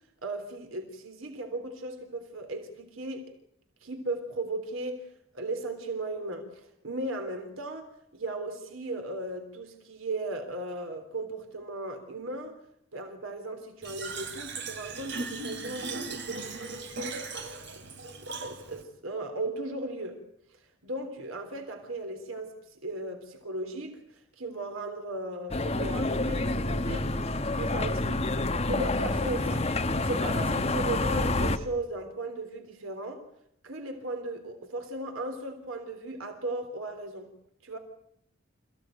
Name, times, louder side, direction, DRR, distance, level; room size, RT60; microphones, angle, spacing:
voice 1, 0.2-3.3 3.8-5.0 5.3-12.6 12.9-16.4 17.8-17.9 18.2-20.2 20.8-27.1 27.5-28.4 28.6-29.7 30.0-33.2 33.6-37.3 37.6-37.8, right 2 dB, 85° right, 3.5 m, -36 dB
Fill (with liquid), 13.8-18.8, right 3 dB, 60° right, 3.1 m, -38 dB
sound 1, 25.5-31.6, left 2 dB, 30° left, 1.2 m, -28 dB
28.0 x 16.5 x 9.2 m
head